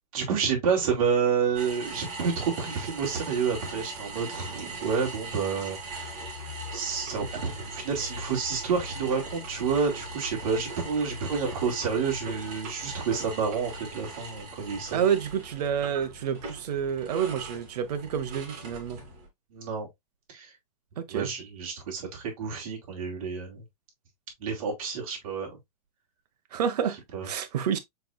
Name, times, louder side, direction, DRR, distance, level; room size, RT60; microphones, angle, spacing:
voice 1, 0.1-5.8 6.7-15.0 19.5-19.9 20.3-20.5 21.1-23.6 24.4-25.6 27.1-27.3, right 6 dB, 60° right, 2.7 m, -29 dB
sound 1, 1.5-19.3, right 2 dB, 35° right, 2.8 m, -40 dB
voice 2, 14.9-19.0 21.0-21.3 26.5-27.8, right 8 dB, 80° right, 1.0 m, -29 dB
5.0 x 4.6 x 2.2 m
supercardioid pair, 160°, 20 cm